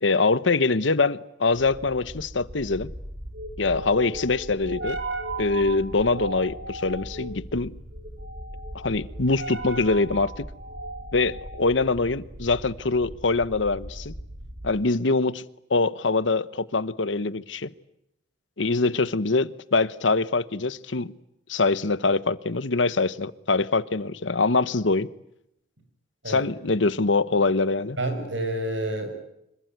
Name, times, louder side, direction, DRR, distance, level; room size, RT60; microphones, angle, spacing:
voice 1, 0.0-2.9 3.6-5.0 5.4-7.7 8.7-10.5 11.1-14.1 14.6-15.4 15.7-17.7 18.6-21.1 21.5-25.1 26.3-28.0, left 3 dB, 90° left, 1.1 m, -24 dB
sound 1, 1.5-14.9, right 1 dB, 70° right, 4.6 m, -37 dB
voice 2, 28.0-29.1, right 1 dB, 90° right, 6.9 m, -28 dB
26.0 x 23.0 x 9.3 m
head